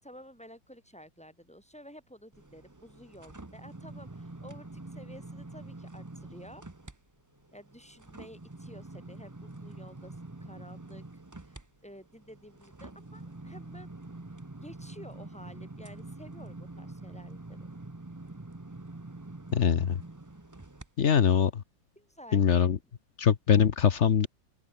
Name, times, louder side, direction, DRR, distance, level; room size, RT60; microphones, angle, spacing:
voice 1, 0.0-6.6 7.5-13.9 14.6-17.7 22.0-22.5, equal, 5° left, 7.9 m, -51 dB
sound 1, 2.3-7.0 7.4-20.9 21.3-21.5, right 2 dB, 15° right, 0.7 m, -46 dB
voice 2, 19.5-20.0 21.0-21.6 22.3-22.8 23.2-24.3, left 8 dB, 45° left, 1.0 m, -23 dB
open air
omnidirectional pair, 2.1 m